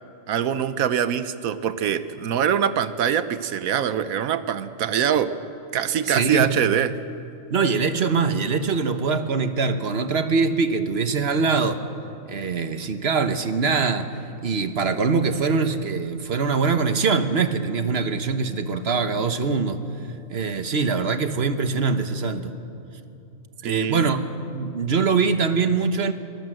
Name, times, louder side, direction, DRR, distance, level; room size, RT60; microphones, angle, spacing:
voice 1, 0.3-5.4 5.7-6.9 23.6-24.1, right 9 dB, 85° right, 12 dB, 1.3 m, -23 dB
voice 2, 6.1-6.5 7.5-11.8 12.3-14.1 14.4-19.8 20.3-22.5 23.6-24.2 24.5-26.1, right 4 dB, 50° right, 9 dB, 1.3 m, -23 dB
24.0 x 18.5 x 7.8 m, 2.7 s
omnidirectional pair, 1.4 m